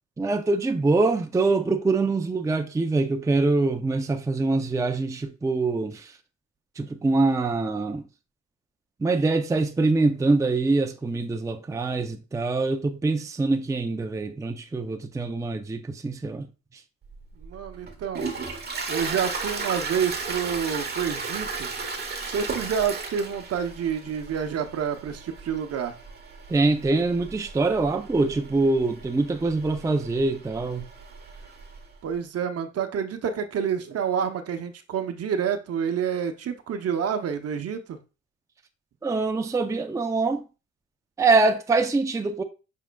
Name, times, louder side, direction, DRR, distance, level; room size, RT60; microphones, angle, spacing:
voice 1, 0.2-6.1 6.8-8.0 9.0-16.5 26.5-30.9 39.0-40.4 41.2-42.4, right 3 dB, 10° right, 0.5 m, -24 dB
Toilet flush, 17.1-31.8, right 4 dB, 35° right, 1.1 m, -35 dB
voice 2, 17.4-18.3 18.9-21.7 22.2-25.9 32.0-38.0, right 7 dB, 55° right, 0.7 m, -28 dB
5.9 x 3.6 x 2.2 m
cardioid pair, 90°, 30 cm